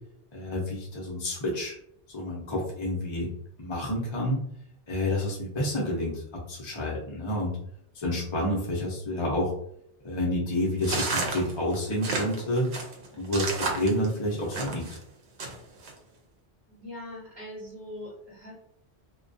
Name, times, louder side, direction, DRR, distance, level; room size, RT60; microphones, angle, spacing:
voice 1, 0.3-1.8 2.1-3.3 3.6-4.4 4.9-7.5 7.9-9.5 10.0-12.7 13.2-15.0, left 1 dB, 40° left, -4 dB, 0.4 m, -29 dB
sound 1, 10.8-15.0 15.4-15.9, right 3 dB, 75° right, 0.8 m, -31 dB
voice 2, 16.7-18.6, left 1 dB, 35° right, -9 dB, 1.0 m, -41 dB
2.2 x 2.2 x 2.5 m, 0.68 s
omnidirectional pair, 1.2 m